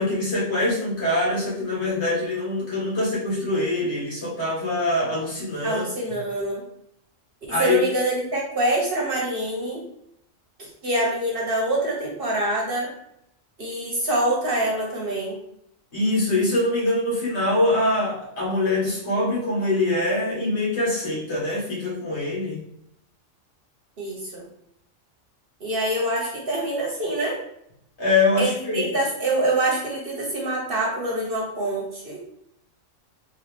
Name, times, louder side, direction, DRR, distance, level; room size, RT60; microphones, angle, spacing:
voice 1, 0.0-5.9 7.5-7.8 15.9-22.6 28.0-28.9, left 2 dB, 55° left, -6 dB, 1.6 m, -24 dB
voice 2, 5.6-6.6 7.6-9.8 10.6-12.9 13.6-15.4 24.0-24.4 25.6-27.3 28.4-32.2, right 1 dB, 50° right, -2 dB, 1.0 m, -25 dB
3.9 x 2.7 x 3.2 m, 0.76 s
omnidirectional pair, 1.4 m